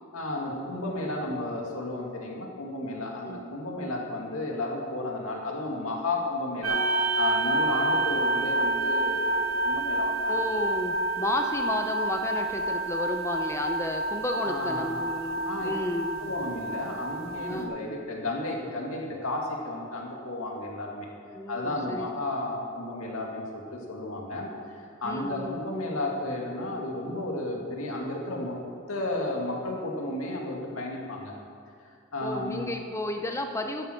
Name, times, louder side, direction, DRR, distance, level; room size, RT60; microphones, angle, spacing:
voice 1, 0.1-6.8 7.2-10.3 14.4-15.0 15.4-15.7 16.2-21.1 21.5-28.6 28.9-31.3 32.1-32.7, left 2 dB, 90° left, -1 dB, 2.1 m, -33 dB
sound 1, 6.6-17.7, right 2 dB, 80° right, 1.6 m, -28 dB
voice 2, 10.3-16.3 17.4-17.7 21.3-22.1 25.0-25.6 32.2-33.9, left 1 dB, 15° left, 4 dB, 0.6 m, -32 dB
12.0 x 11.0 x 4.5 m, 2.3 s
head